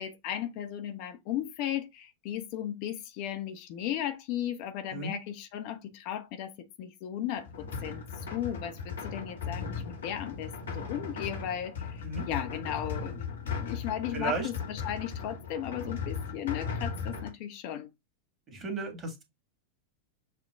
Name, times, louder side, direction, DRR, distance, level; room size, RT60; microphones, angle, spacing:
voice 1, 0.0-8.0 8.3-17.9, left 11 dB, 45° left, 0.6 m, -36 dB
sound 1, 7.4-17.3, left 5 dB, 70° left, 1.2 m, -37 dB
voice 2, 14.1-14.5 18.5-19.2, right 3 dB, 25° right, 1.6 m, -34 dB
6.7 x 2.2 x 3.5 m
figure-of-eight pair, 90°, 0 cm